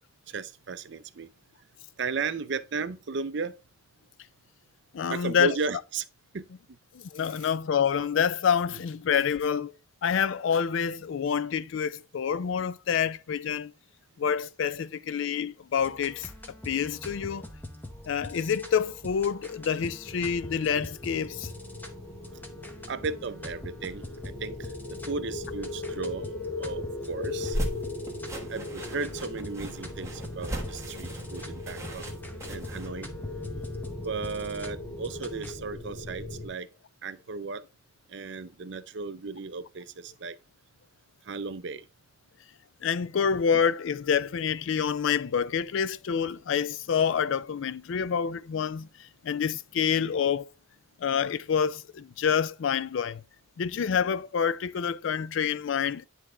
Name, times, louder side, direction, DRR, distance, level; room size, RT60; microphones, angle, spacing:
voice 1, 0.3-1.3 2.0-3.5 5.1-6.1 6.3-6.5 7.2-7.5 8.7-8.8 22.9-26.3 26.6-27.6 28.5-32.0 32.5-33.1 34.0-36.7 37.0-37.6 38.1-40.4 41.3-41.9, right 4 dB, 60° right, 0.5 m, -35 dB
voice 2, 4.9-5.5 6.9-9.7 10.0-13.7 14.2-16.3 16.7-17.4 18.1-21.5 42.8-48.9 49.2-50.5 51.0-53.2 53.6-56.0, left 7 dB, 70° left, 0.4 m, -27 dB
sound 1, 15.8-35.5, left 1 dB, 10° left, 0.8 m, -44 dB
sound 2, 20.0-36.5, left 2 dB, 35° left, 1.7 m, -39 dB
sound 3, 27.3-32.9, right 1 dB, 15° right, 1.3 m, -37 dB
10.0 x 3.4 x 3.7 m
head